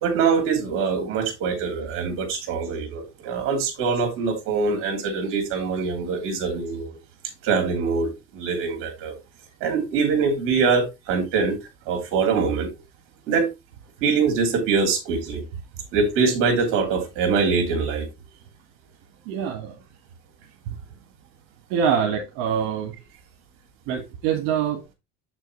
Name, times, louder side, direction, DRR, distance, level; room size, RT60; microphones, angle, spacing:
voice 1, 0.0-7.0 7.4-9.2 9.6-11.6 11.9-12.7 13.3-13.5 14.0-15.4 15.9-18.1, right 5 dB, 40° right, 2.9 m, -23 dB
voice 2, 19.3-19.8 20.7-20.8 21.7-22.9 23.9-24.9, right 7 dB, 60° right, 1.8 m, -25 dB
7.8 x 6.3 x 3.1 m
cardioid pair, 180°, 31 cm